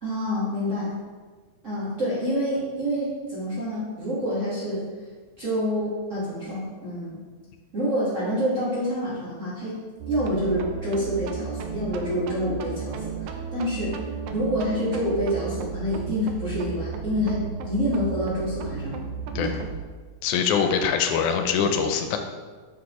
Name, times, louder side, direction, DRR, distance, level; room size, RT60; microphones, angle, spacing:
voice 1, 0.0-0.9 1.6-4.8 5.4-7.2 7.7-9.8 10.1-19.0 19.3-19.5, equal, 35° right, -10 dB, 1.5 m, -27 dB
sound 1, 10.0-19.8, right 6 dB, 90° right, 1.3 m, -34 dB
voice 2, 20.2-22.2, left 6 dB, 85° left, 5 dB, 2.1 m, -23 dB
6.3 x 5.6 x 3.1 m, 1.4 s
omnidirectional pair, 3.4 m